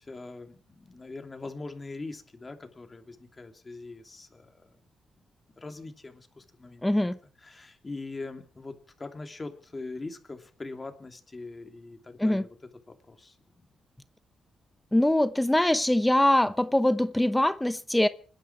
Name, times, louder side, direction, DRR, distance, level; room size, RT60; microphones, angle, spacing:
voice 1, 0.0-4.7 5.6-6.8 7.4-12.5 12.9-13.4, left 3 dB, 30° left, 2.9 m, -42 dB
voice 2, 6.8-7.2 12.2-12.4 14.9-18.1, left 1 dB, 10° left, 0.8 m, -23 dB
27.5 x 10.0 x 4.7 m
cardioid pair, 75°, 0 cm